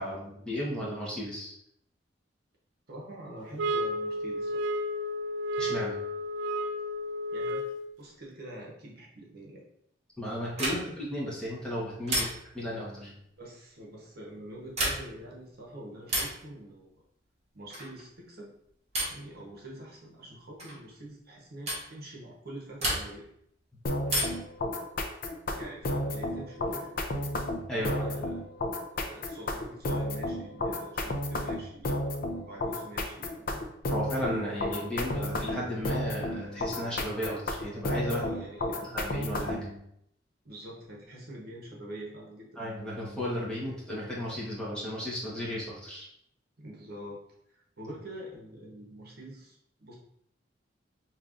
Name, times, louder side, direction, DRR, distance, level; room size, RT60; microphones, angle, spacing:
voice 1, 0.0-1.5 5.6-6.0 10.2-12.3 12.5-13.1 27.7-28.1 33.9-38.2 38.8-39.8 42.6-46.1, equal, 5° left, -7 dB, 1.2 m, -34 dB
voice 2, 2.9-4.6 7.3-9.6 12.1-12.3 13.4-17.0 17.5-18.5 19.1-23.2 25.5-27.3 27.7-28.5 28.9-32.0 32.4-33.6 38.0-38.8 40.4-42.6 46.6-47.2 47.5-50.0, right 1 dB, 60° right, -3 dB, 1.0 m, -45 dB
sound 1, 3.6-7.9, equal, 85° right, 0.4 m, -32 dB
sound 2, 10.5-11.1 12.1-12.7 14.6-15.3 16.1-16.5 17.7-18.0 18.9-19.3 20.6-20.8 21.7-21.9 22.8-23.3 24.1-24.6 26.0-26.7, right 1 dB, 35° right, 1.4 m, -32 dB
sound 3, 23.9-39.7, left 1 dB, 50° left, 0.5 m, -32 dB
5.3 x 2.8 x 2.5 m, 0.74 s
head